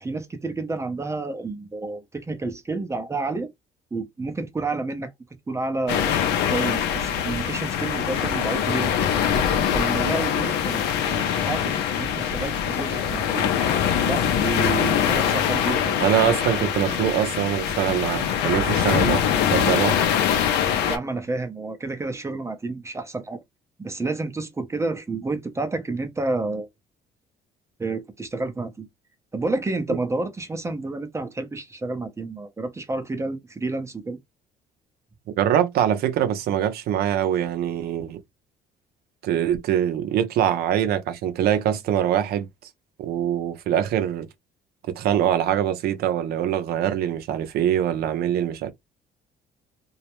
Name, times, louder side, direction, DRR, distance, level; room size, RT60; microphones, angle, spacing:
voice 1, 0.0-3.5 3.9-5.1 5.5-6.2 6.5-9.0 9.7-13.5 14.0-16.0 20.9-23.4 23.8-26.7 27.8-28.9 29.3-34.2, right 3 dB, 15° right, 0.5 m, -30 dB
sound 1, 5.9-21.0, left 8 dB, 85° left, 0.6 m, -23 dB
voice 2, 16.0-20.0 35.4-38.2 39.2-42.5 43.0-44.3 45.0-48.7, right 10 dB, 65° right, 0.5 m, -23 dB
2.3 x 2.0 x 2.9 m
cardioid pair, 110°, 17 cm